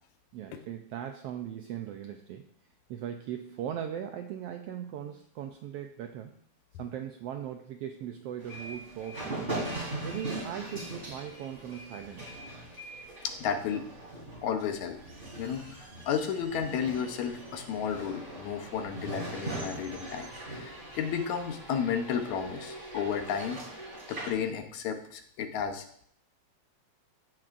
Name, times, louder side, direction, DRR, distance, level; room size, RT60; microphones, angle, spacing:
voice 1, 0.3-2.4 2.9-6.3 6.8-9.5 10.0-12.3, right 10 dB, 80° right, 5 dB, 1.4 m, -39 dB
sound 1, 8.4-24.3, right 2 dB, 20° right, 3.2 m, -41 dB
voice 2, 13.2-13.8 14.4-15.0 15.4-23.6 24.1-25.9, left 7 dB, 80° left, 6 dB, 2.2 m, -33 dB
16.0 x 6.0 x 2.5 m, 0.64 s
omnidirectional pair, 3.3 m